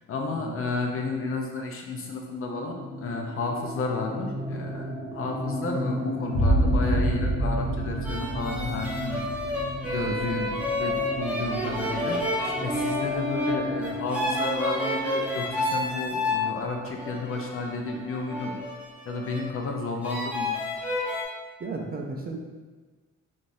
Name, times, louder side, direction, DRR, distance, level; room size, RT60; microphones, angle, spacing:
voice 1, 0.1-4.8 5.1-9.2 9.8-12.2 12.4-18.5 19.1-20.5, left 3 dB, 45° left, 2 dB, 0.5 m, -32 dB
sound 1, 2.4-18.0, left 1 dB, 80° right, 0.7 m, -35 dB
sound 2, 6.3-13.7, right 1 dB, 85° left, 1.0 m, -29 dB
sound 3, 8.0-16.4 17.0-19.5 20.0-21.2, left 1 dB, 5° right, 0.8 m, -30 dB
voice 2, 10.1-10.4 21.6-22.4, right 3 dB, 30° right, 1 dB, 0.4 m, -34 dB
3.9 x 2.4 x 2.5 m, 1.3 s
cardioid pair, 90°, 30 cm